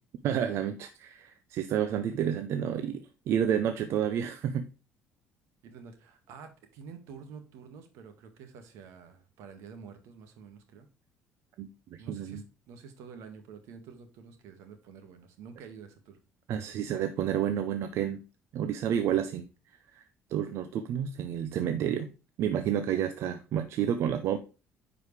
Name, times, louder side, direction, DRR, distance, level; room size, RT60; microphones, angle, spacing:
voice 1, 0.2-4.7 11.6-12.4 16.5-18.2 18.5-19.5 19.9-20.0 20.3-22.1 22.4-24.4, right 9 dB, 65° right, 0.6 m, -30 dB
voice 2, 5.6-10.9 12.0-16.2, right 6 dB, 85° right, 1.8 m, -49 dB
9.5 x 4.9 x 3.2 m
cardioid pair, 125°, 5 cm